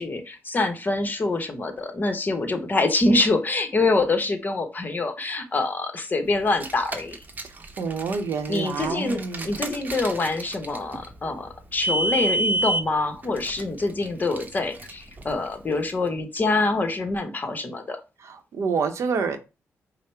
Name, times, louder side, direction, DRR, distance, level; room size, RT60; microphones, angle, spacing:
voice 1, 0.0-7.2 8.5-18.0, left 2 dB, 35° left, 0.9 m, -25 dB
Car, 6.4-15.9, right 2 dB, 35° right, 0.8 m, -31 dB
voice 2, 7.8-9.5 18.2-19.4, right 5 dB, 70° right, 0.7 m, -27 dB
5.0 x 2.0 x 4.3 m
cardioid pair, 75°, 5 cm